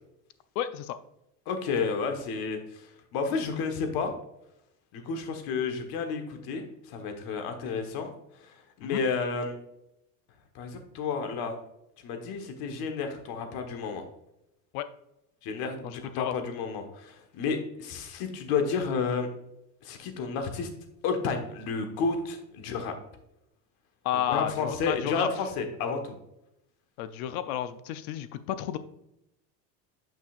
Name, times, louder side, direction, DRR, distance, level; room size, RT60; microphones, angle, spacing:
voice 1, 0.6-1.0 8.8-9.0 14.7-14.9 15.8-16.3 24.0-25.3 27.0-28.8, left 11 dB, 85° left, 12 dB, 0.7 m, -31 dB
voice 2, 1.5-4.1 4.9-8.1 8.4-9.6 10.5-11.5 12.0-14.0 15.4-19.3 19.8-20.7 21.0-22.9 24.3-26.1, left 5 dB, 60° left, 6 dB, 1.4 m, -31 dB
9.0 x 5.5 x 2.4 m, 0.84 s
cardioid pair, 140°, 42 cm